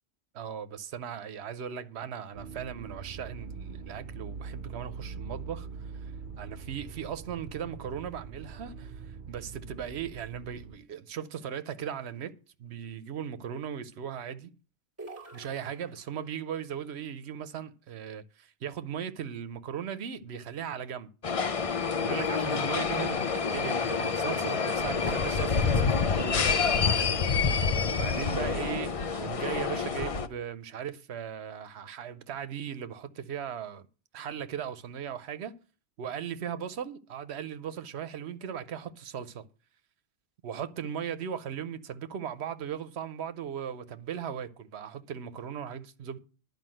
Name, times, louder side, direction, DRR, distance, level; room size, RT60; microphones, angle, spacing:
voice 1, 0.3-5.9 6.4-12.3 12.6-14.5 15.3-21.1 22.0-27.2 28.0-33.8 34.1-35.6 36.0-39.4 40.4-46.2, right 8 dB, 90° right, 1.0 m, -38 dB
sound 1, 2.3-10.8, right 5 dB, 55° right, 0.7 m, -43 dB
sound 2, 15.0-16.5, right 3 dB, 15° right, 1.5 m, -47 dB
sound 3, 21.2-30.3, left 5 dB, 40° left, 0.6 m, -27 dB
11.0 x 5.0 x 7.6 m
omnidirectional pair, 1.1 m